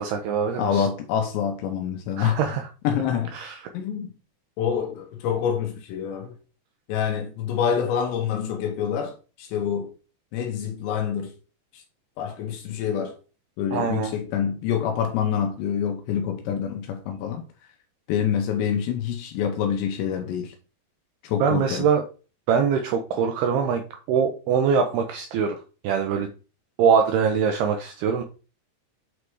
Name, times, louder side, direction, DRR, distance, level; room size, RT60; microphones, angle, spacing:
voice 1, 0.0-0.9 2.2-2.7 3.3-3.6 13.7-14.1 21.4-22.0 22.5-25.6 25.8-26.3 26.8-28.2, right 6 dB, 80° right, 2.3 m, -23 dB
voice 2, 0.5-2.4 2.8-3.4 3.7-4.1 4.6-6.4 6.9-9.9 10.3-11.3 11.7-11.8 12.2-13.2 13.6-17.4 18.1-20.5 21.2-21.9, left 8 dB, 80° left, 2.9 m, -26 dB
8.2 x 3.3 x 4.6 m
omnidirectional pair, 5.2 m